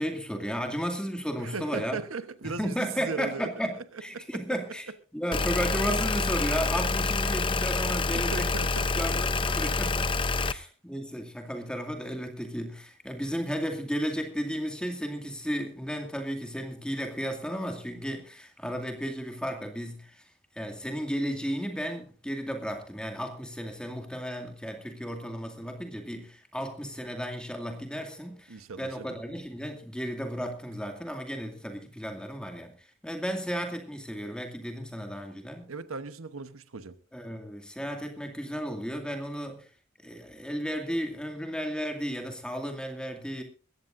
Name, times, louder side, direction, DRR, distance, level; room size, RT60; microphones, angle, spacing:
voice 1, 0.0-2.0 2.4-4.9 5.1-8.5 9.0-10.1 10.4-20.2 20.5-35.7 37.1-39.7 40.0-43.4, equal, 5° left, 2.3 m, -34 dB
voice 2, 1.4-3.5 4.1-4.4 8.1-9.2 10.3-10.6 28.5-29.1 35.7-37.0, right 4 dB, 85° right, 1.0 m, -38 dB
sound 1, 5.3-10.5, left 3 dB, 25° left, 0.6 m, -27 dB
21.0 x 15.5 x 2.6 m
head